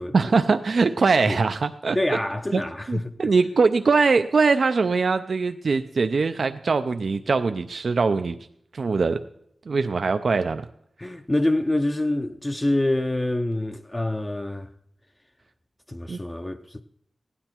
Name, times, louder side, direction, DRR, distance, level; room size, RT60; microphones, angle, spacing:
voice 1, 0.1-2.2 2.5-2.6 2.9-8.4 8.7-9.2 9.7-10.7 16.1-16.2, right 4 dB, 70° right, 0.5 m, -22 dB
voice 2, 1.9-3.3 11.0-14.7 15.9-16.8, left 1 dB, 20° left, 0.6 m, -26 dB
16.0 x 9.9 x 4.4 m
cardioid pair, 60°, 0 cm